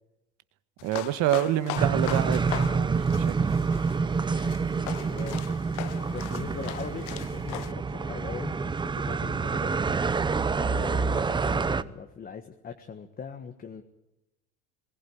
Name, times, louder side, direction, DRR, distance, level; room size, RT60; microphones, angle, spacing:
sound 1, 0.8-7.7, left 20 dB, 60° left, 0.7 m, -40 dB
voice 1, 0.8-3.3, right 13 dB, 60° right, 12 dB, 1.4 m, -27 dB
sound 2, 1.8-11.8, right 5 dB, 15° right, 0.7 m, -27 dB
voice 2, 4.9-5.6 6.1-10.0 10.6-13.8, left 6 dB, 25° left, 6 dB, 1.5 m, -40 dB
21.5 x 15.5 x 9.6 m, 0.95 s
supercardioid pair, 110°, 35 cm